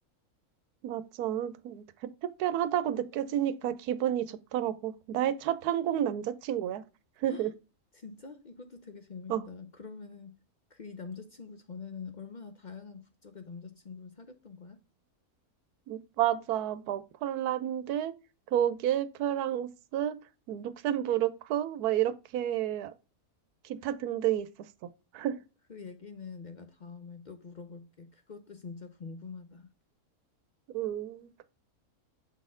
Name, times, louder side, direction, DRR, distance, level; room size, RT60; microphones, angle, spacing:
voice 1, 0.8-1.8 2.2-6.8 7.2-7.5 9.3-9.4 15.9-18.1 18.5-20.2 20.5-22.9 23.6-24.5 25.1-25.4 30.7-31.4, right 11 dB, 90° right, 1.1 m, -30 dB
voice 2, 7.9-10.4 10.7-14.8 25.7-29.7, left 5 dB, 55° left, 0.5 m, -45 dB
7.2 x 4.1 x 3.7 m
omnidirectional pair, 1.6 m